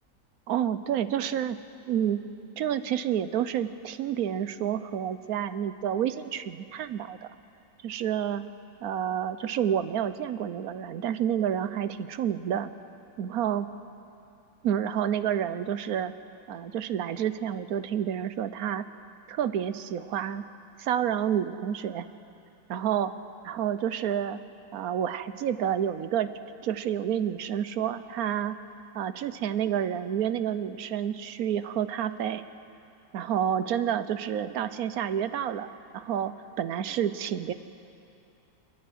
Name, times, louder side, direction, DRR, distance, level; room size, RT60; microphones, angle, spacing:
voice 1, 0.5-1.6 1.9-2.2 2.6-7.3 7.8-8.4 8.8-12.7 13.2-13.7 14.6-16.1 16.5-18.9 19.3-20.5 20.8-22.1 22.7-23.1 23.4-24.4 24.7-26.3 26.6-28.6 28.9-32.4 33.1-37.5, right 9 dB, 65° right, 13 dB, 1.1 m, -29 dB
28.0 x 10.0 x 9.6 m, 2.7 s
omnidirectional pair, 1.8 m